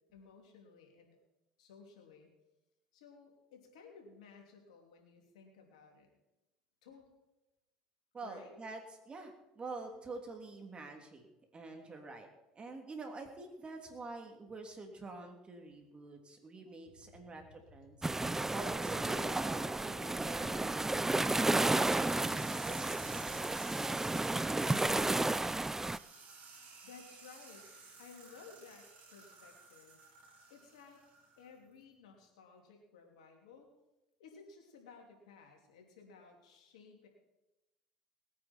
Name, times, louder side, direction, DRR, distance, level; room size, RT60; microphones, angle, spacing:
voice 1, 0.1-1.2 1.6-2.3 2.9-6.2 6.8-7.1 8.2-8.6 16.6-17.5 26.8-27.7 28.0-30.0 30.5-31.0 31.4-33.7 34.2-37.1, left 5 dB, 85° left, 2 dB, 3.0 m, -57 dB
voice 2, 8.1-8.8 9.1-11.3 11.5-12.3 12.5-18.0 18.5-23.4, right 3 dB, 30° right, 4 dB, 3.1 m, -47 dB
sound 1, 18.0-26.0, right 2 dB, 10° right, 0.5 m, -32 dB
sound 2, 21.7-31.5, right 4 dB, 50° right, 5.0 m, -55 dB
20.0 x 9.5 x 4.5 m, 0.96 s
hypercardioid pair, 80°, 4 cm